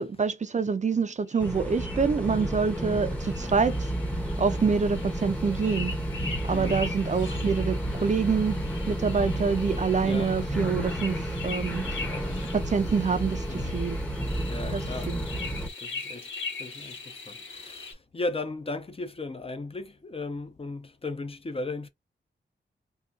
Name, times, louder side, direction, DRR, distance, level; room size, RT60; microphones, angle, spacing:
voice 1, 0.0-3.9 4.4-5.9 6.4-8.6 8.9-12.1 12.5-14.0 14.7-15.2, right 5 dB, 40° right, 0.4 m, -26 dB
sound 1, 1.3-17.9, left 4 dB, 90° left, 1.2 m, -41 dB
sound 2, 1.4-15.7, right 1 dB, 5° left, 0.8 m, -31 dB
voice 2, 6.5-6.8 10.0-10.4 12.0-12.5 13.5-13.7 14.5-15.3 15.8-21.9, left 2 dB, 30° left, 0.5 m, -36 dB
3.6 x 2.3 x 2.5 m
wide cardioid pair, 115°, 19 cm